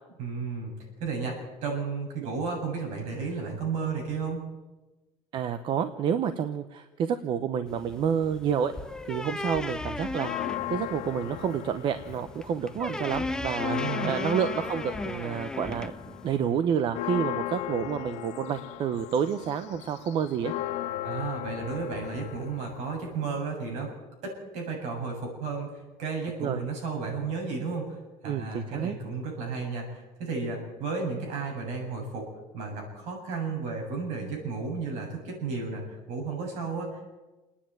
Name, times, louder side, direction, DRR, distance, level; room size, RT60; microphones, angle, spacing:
voice 1, 0.2-0.7 1.0-4.5 13.7-14.1 21.0-23.9 24.2-32.3 32.5-36.9, right 4 dB, 65° right, 1 dB, 7.6 m, -33 dB
voice 2, 5.3-8.7 9.1-15.9 16.2-20.5 26.4-26.6 28.2-29.0, right 8 dB, 40° right, 10 dB, 0.8 m, -29 dB
sound 1, 7.7-16.4, left 2 dB, 5° left, 0.6 m, -36 dB
Church bell, 10.1-12.5 12.9-13.0 13.3-23.4, left 14 dB, 65° left, 0.8 m, -37 dB
29.0 x 10.0 x 9.1 m, 1.1 s
cardioid pair, 175°, 13 cm